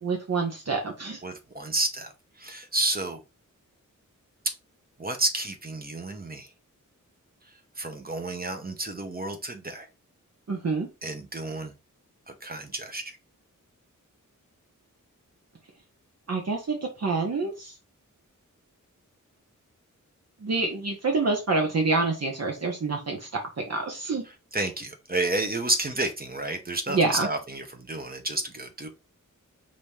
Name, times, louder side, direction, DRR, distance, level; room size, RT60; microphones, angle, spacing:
voice 1, 0.0-1.2 10.5-10.9 16.3-17.7 20.4-24.2 26.9-27.3, right 3 dB, 55° right, 1.0 m, -27 dB
voice 2, 1.2-2.1 2.4-3.2 5.0-6.5 7.8-9.9 11.0-11.7 12.3-13.2 24.5-28.9, right 2 dB, 30° right, 0.9 m, -30 dB
5.3 x 2.8 x 3.4 m
wide cardioid pair, 85°, 32 cm